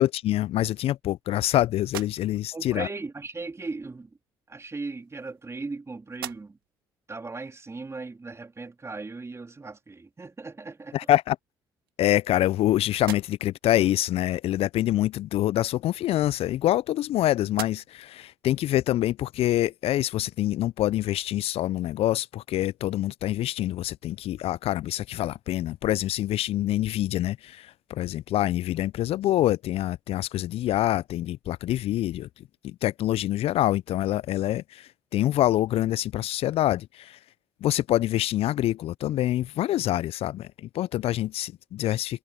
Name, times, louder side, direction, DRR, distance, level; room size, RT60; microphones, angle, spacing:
voice 1, 0.0-2.9 10.9-11.4 12.0-32.3 32.6-37.2 37.6-42.2, left 14 dB, 60° left, 0.7 m, -26 dB
sound 1, 1.8-2.7 3.8-3.9 4.9-5.8 6.1-6.8 7.3-7.4 10.1-10.2 10.6-11.3 11.9-12.6 12.9-13.7 15.7-17.1 17.5-18.2, right 13 dB, 85° right, 3.2 m, -43 dB
voice 2, 2.5-4.1 4.5-6.6 7.1-11.0, right 3 dB, 25° right, 3.4 m, -37 dB
hypercardioid pair, 50°, 12 cm